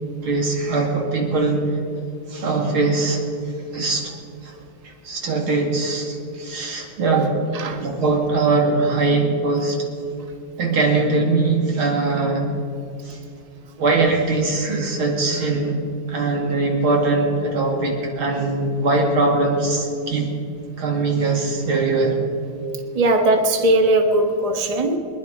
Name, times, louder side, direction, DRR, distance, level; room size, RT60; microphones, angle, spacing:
voice 1, 0.2-1.6 2.3-3.2 3.7-4.1 4.4-4.5 5.0-7.4 7.8-9.8 10.6-12.5 13.0-13.2 13.8-15.8 16.1-20.3 20.8-22.2, right 3 dB, 85° right, 0 dB, 3.1 m, -21 dB
voice 2, 22.9-25.0, right 1 dB, 20° right, 4 dB, 1.1 m, -19 dB
23.5 x 10.5 x 5.3 m, 2.6 s
omnidirectional pair, 2.2 m